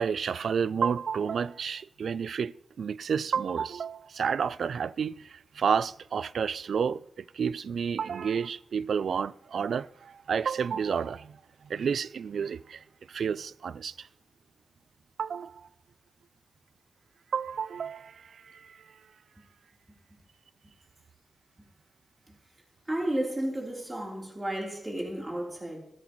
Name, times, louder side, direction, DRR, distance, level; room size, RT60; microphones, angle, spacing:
voice 1, 0.0-11.4 11.6-14.1 15.2-15.7 17.3-18.8, right 6 dB, 75° right, 0.3 m, -30 dB
voice 2, 22.9-25.8, right 1 dB, 20° right, 3.6 m, -32 dB
14.0 x 13.0 x 3.1 m
cardioid pair, 65°, 0 cm